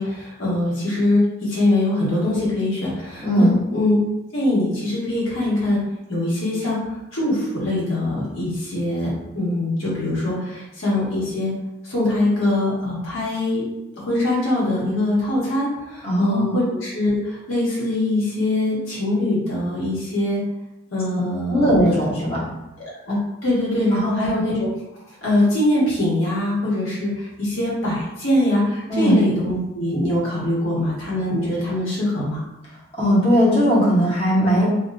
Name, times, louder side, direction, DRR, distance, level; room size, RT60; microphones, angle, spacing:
voice 1, 0.0-3.5 3.7-4.0 4.3-5.8 6.1-6.8 7.1-11.5 11.8-13.6 13.9-20.4 20.9-22.0 22.8-24.7 25.2-32.4, left 1 dB, 70° left, -7 dB, 1.2 m, -22 dB
voice 2, 3.2-3.5 16.0-16.6 21.5-22.4 23.9-24.3 28.9-29.2 33.0-34.6, equal, 30° left, -8 dB, 0.9 m, -18 dB
2.8 x 2.3 x 2.3 m, 0.94 s
head